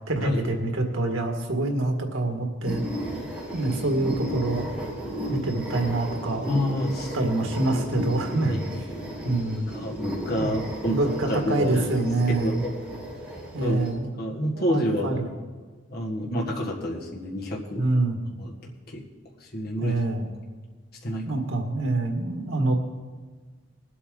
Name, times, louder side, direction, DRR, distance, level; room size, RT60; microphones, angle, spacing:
voice 1, 0.0-2.8 3.5-4.7 5.3-6.5 7.1-8.8 9.2-9.7 10.4-12.6 13.5-14.1 14.5-15.3 17.8-18.2 19.8-20.3 21.3-22.7, right 2 dB, 85° right, 3 dB, 1.9 m, -26 dB
sound 1, 2.6-13.9, equal, 5° right, 2.9 m, -34 dB
voice 2, 6.5-7.3 8.4-8.6 9.7-11.0 11.3-11.8 12.3-12.5 13.6-13.9 14.2-15.2 15.9-17.9 18.4-18.5 18.9-19.0 19.5-20.0 21.0-21.3, equal, 55° left, -2 dB, 1.8 m, -28 dB
21.5 x 8.4 x 3.9 m, 1.4 s
head